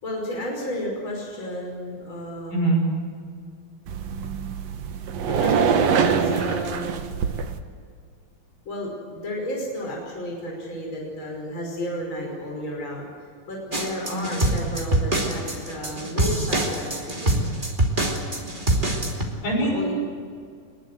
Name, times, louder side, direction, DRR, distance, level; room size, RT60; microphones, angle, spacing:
voice 1, 0.0-2.7 5.2-7.0 8.6-13.1 13.5-17.4 19.6-20.0, equal, 35° left, 0 dB, 6.1 m, -32 dB
voice 2, 2.5-2.8 14.1-14.4 19.4-20.0, right 2 dB, 70° left, -1 dB, 8.3 m, -23 dB
sound 1, 3.9-7.6, right 6 dB, 60° right, 2.1 m, -24 dB
sound 2, 13.7-19.2, right 1 dB, 15° right, 2.5 m, -25 dB
24.5 x 21.0 x 8.1 m, 2.1 s
omnidirectional pair, 4.1 m